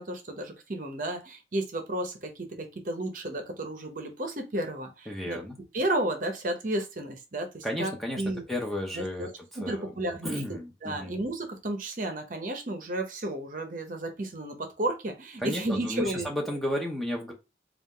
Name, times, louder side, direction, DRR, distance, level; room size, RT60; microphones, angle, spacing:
voice 1, 0.0-5.4 5.7-7.9 8.2-8.4 8.9-9.3 9.6-16.6, right 1 dB, 45° right, 5 dB, 0.8 m, -33 dB
voice 2, 5.1-5.6 7.6-8.2 8.5-9.3 9.6-9.9 10.2-11.2 15.4-17.3, left 1 dB, ahead, 0 dB, 0.7 m, -33 dB
4.1 x 2.4 x 3.7 m, 0.26 s
head